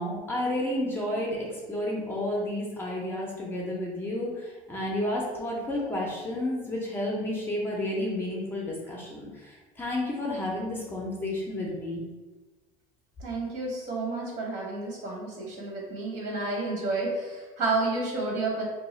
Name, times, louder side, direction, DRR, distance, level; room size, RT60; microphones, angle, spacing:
voice 1, 0.0-12.0, left 1 dB, 15° left, -3 dB, 0.5 m, -31 dB
voice 2, 13.2-18.6, right 3 dB, 65° right, -2 dB, 1.1 m, -30 dB
2.7 x 2.3 x 4.1 m, 1.2 s
cardioid pair, 160°, 16 cm